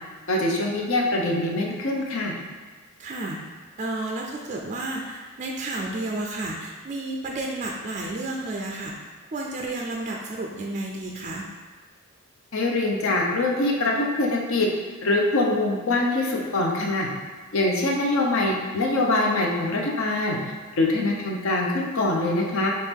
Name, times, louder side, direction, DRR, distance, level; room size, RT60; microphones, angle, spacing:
voice 1, 0.3-2.3 12.5-14.7 15.0-17.1 17.5-20.4 20.8-22.7, left 2 dB, 60° left, 0 dB, 0.7 m, -23 dB
voice 2, 3.0-3.4 3.8-8.9 9.3-11.5, right 2 dB, 35° right, 0 dB, 0.4 m, -31 dB
4.5 x 3.0 x 3.5 m, 1.4 s
head